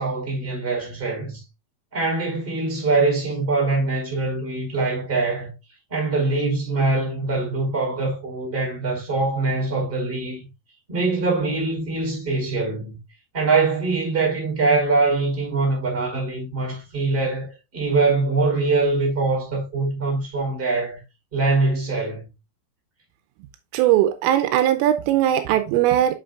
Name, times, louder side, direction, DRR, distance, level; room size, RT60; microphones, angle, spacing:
voice 1, 0.0-1.4 1.9-5.5 5.9-10.4 10.9-13.0 13.3-21.0 21.3-22.3, right 3 dB, 10° right, 4.3 m, -23 dB
voice 2, 23.7-26.1, right 12 dB, 85° right, 3.3 m, -19 dB
7.8 x 7.5 x 2.4 m
omnidirectional pair, 5.8 m